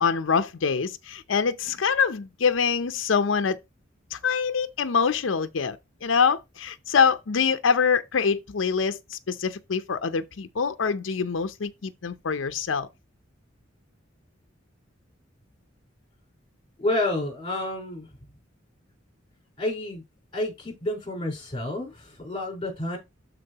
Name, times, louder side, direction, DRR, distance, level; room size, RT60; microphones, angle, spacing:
voice 1, 0.0-3.6 4.1-5.8 6.0-12.9, left 6 dB, 75° left, 0.6 m, -25 dB
voice 2, 16.8-18.1 19.6-20.0 20.3-23.0, left 1 dB, 25° left, 4.3 m, -29 dB
12.0 x 4.2 x 2.9 m
head